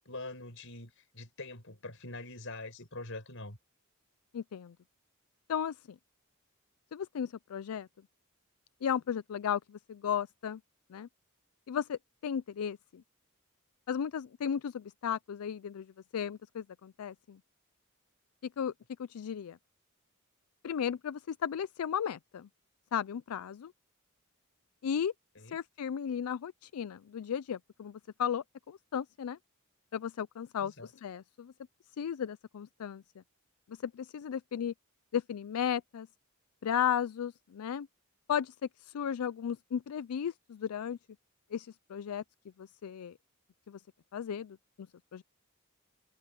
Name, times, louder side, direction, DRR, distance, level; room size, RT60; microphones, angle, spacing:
voice 1, 0.0-3.6 25.4-25.6 30.6-30.9, left 2 dB, 60° left, 6.3 m, -44 dB
voice 2, 4.3-4.7 5.5-5.8 6.9-7.9 8.8-10.6 10.9-11.1 11.7-13.0 13.9-17.4 18.6-18.7 19.0-19.6 20.6-22.5 22.9-23.7 24.8-25.1 25.5-29.4 29.9-31.5 32.0-33.0 33.7-34.7 35.1-36.1 36.6-37.9 38.3-41.0 41.5-42.2 42.6-43.1 43.7-43.8 44.1-44.9 45.1-45.2, left 8 dB, 85° left, 0.4 m, -35 dB
head